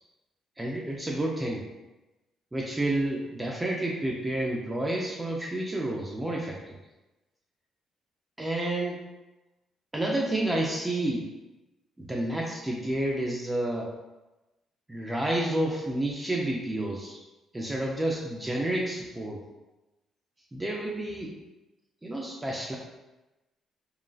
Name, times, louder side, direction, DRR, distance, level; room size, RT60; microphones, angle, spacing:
voice 1, 0.6-1.6 2.5-6.7 8.4-9.0 9.9-11.3 12.0-13.9 14.9-17.2 17.5-19.4 20.5-21.3 22.0-22.8, right 1 dB, 15° right, -2 dB, 0.4 m, -30 dB
2.9 x 2.6 x 2.3 m, 1.1 s
cardioid pair, 90°, 0 cm